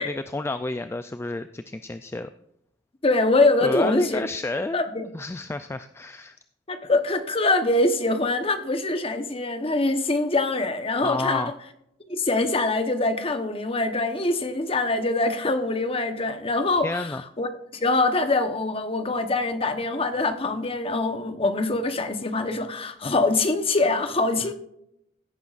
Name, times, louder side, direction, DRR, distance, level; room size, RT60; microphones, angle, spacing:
voice 1, 0.0-2.3 3.6-4.8 5.1-6.4 11.0-11.5 16.8-17.2, left 2 dB, 15° left, 10 dB, 0.3 m, -30 dB
voice 2, 3.0-4.2 4.7-5.0 6.7-11.4 12.1-17.1 17.4-24.5, left 2 dB, 30° left, 8 dB, 1.0 m, -24 dB
16.5 x 9.3 x 2.5 m, 0.77 s
head